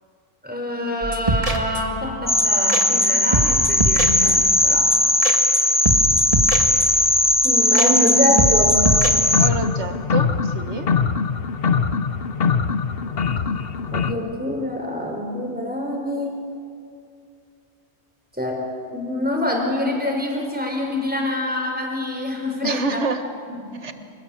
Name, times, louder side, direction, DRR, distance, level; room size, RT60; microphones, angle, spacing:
voice 1, 0.4-4.9 7.4-8.9 13.9-16.5 18.3-23.0 23.5-23.9, left 1 dB, 10° right, 0 dB, 5.0 m, -25 dB
sound 1, 1.0-2.0 2.4-2.5 2.7-3.1 3.3-4.5 4.9-5.6 5.8-7.1 7.4-7.5 7.7-8.1 8.4-9.1, right 1 dB, 30° right, 2.0 m, -24 dB
sound 2, 2.3-9.5, left 1 dB, 10° left, 0.6 m, -18 dB
sound 3, 8.8-14.1, left 6 dB, 60° left, 1.2 m, -23 dB
voice 2, 9.4-10.9 22.6-23.2 23.8-23.9, right 3 dB, 80° right, 7 dB, 1.9 m, -27 dB
28.0 x 20.0 x 8.7 m, 2.4 s
omnidirectional pair, 1.2 m